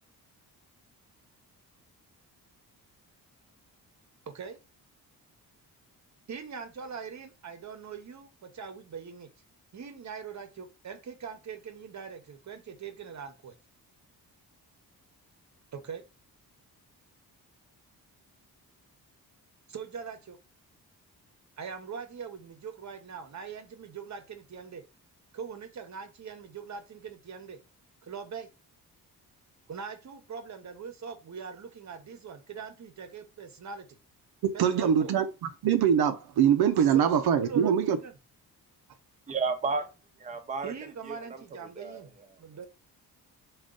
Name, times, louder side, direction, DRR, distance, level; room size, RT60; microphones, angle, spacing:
voice 1, 4.3-4.6 6.3-9.3 9.7-13.5 15.7-16.0 19.7-20.4 21.6-24.8 25.3-27.6 28.0-28.5 29.7-33.9 34.5-35.1 36.8-37.1 37.4-38.2 40.6-42.1 42.4-42.7, right 6 dB, 45° right, 0.9 m, -42 dB
voice 2, 34.6-38.0, right 8 dB, 75° right, 0.5 m, -23 dB
voice 3, 39.3-39.9 40.2-40.7 41.0-41.2 41.8-42.0, right 4 dB, 20° right, 0.6 m, -31 dB
3.6 x 2.4 x 3.8 m
cardioid pair, 90°, 38 cm